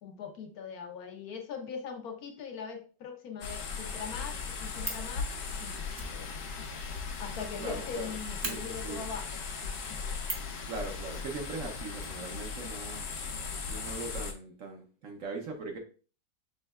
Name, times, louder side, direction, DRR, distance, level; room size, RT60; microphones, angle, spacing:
voice 1, 0.0-5.3 5.6-10.2 13.7-14.1, left 6 dB, 70° left, 4 dB, 1.0 m, -42 dB
sound 1, 3.4-14.3, left 5 dB, 85° left, 1.4 m, -38 dB
Fire, 4.8-5.1 5.9-7.7 7.9-8.0 8.4-8.6 10.2-10.6 12.0-12.9 13.1-13.2 13.4-13.5, right 2 dB, 30° right, 0.7 m, -39 dB
voice 2, 7.6-8.2 8.4-9.1 10.7-13.0 13.7-15.8, right 3 dB, 60° right, 3 dB, 1.1 m, -40 dB
6.2 x 3.2 x 2.3 m, 0.37 s
omnidirectional pair, 1.8 m